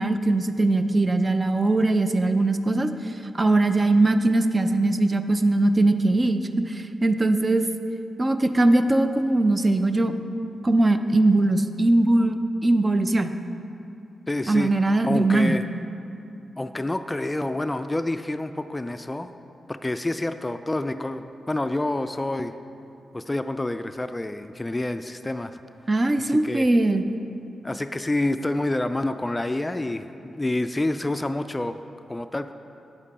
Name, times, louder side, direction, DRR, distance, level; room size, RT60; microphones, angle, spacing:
voice 1, 0.0-7.7 8.2-10.1 10.6-13.3 14.5-15.5 25.9-27.0, right 2 dB, 35° right, 9 dB, 0.5 m, -21 dB
voice 2, 14.3-14.7 15.0-15.6 16.6-19.3 19.7-22.5 23.1-25.6 26.2-26.7 27.6-31.8 32.1-32.5, left 2 dB, 20° left, 10 dB, 0.3 m, -28 dB
8.9 x 7.3 x 4.2 m, 2.7 s
supercardioid pair, 50°, 0 cm